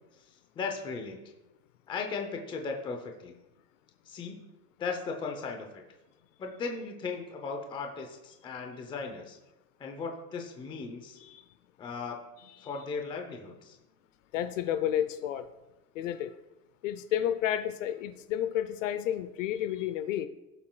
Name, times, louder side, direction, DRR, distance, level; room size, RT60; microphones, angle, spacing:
voice 1, 0.6-1.2 1.9-3.4 4.1-4.4 4.8-5.8 6.4-9.4 9.8-11.2 11.8-12.2 12.6-13.8, left 4 dB, 10° left, 3 dB, 0.6 m, -37 dB
voice 2, 14.3-15.5 15.9-16.3 16.8-20.3, left 11 dB, 50° left, 12 dB, 0.6 m, -31 dB
16.5 x 7.3 x 2.3 m, 1.0 s
supercardioid pair, 150°, 48 cm